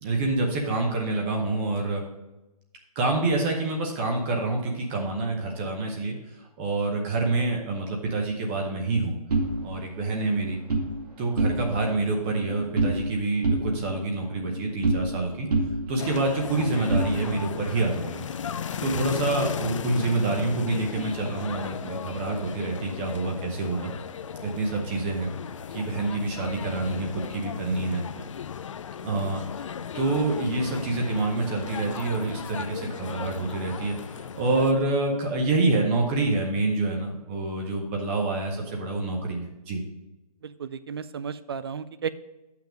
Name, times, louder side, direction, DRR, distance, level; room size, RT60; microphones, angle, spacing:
voice 1, 0.0-2.0 3.0-9.1 9.6-10.6 11.2-15.5 15.9-18.2 18.8-23.9 24.4-25.3 25.7-28.0 29.0-39.8, right 2 dB, 20° right, 2 dB, 0.8 m, -27 dB
sound 1, 9.3-10.9 11.3-11.9 12.2-13.1 13.4-15.2 15.5-17.6, right 2 dB, 80° right, 2.1 m, -28 dB
sound 2, 16.0-34.7, left 7 dB, 50° left, 0.4 m, -36 dB
voice 2, 28.2-28.5 40.4-42.1, right 7 dB, 40° right, 14 dB, 0.4 m, -35 dB
7.5 x 5.8 x 5.1 m, 0.99 s
hypercardioid pair, 160°, 20 cm